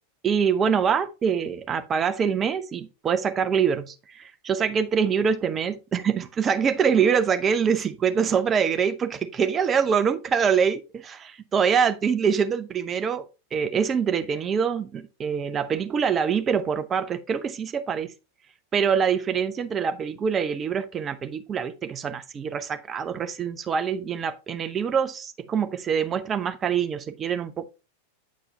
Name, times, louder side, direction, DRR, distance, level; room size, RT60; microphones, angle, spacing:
voice 1, 0.2-18.1 18.7-27.7, right 7 dB, 25° right, 0.7 m, -25 dB
8.3 x 4.6 x 3.4 m
figure-of-eight pair, 90°, 0 cm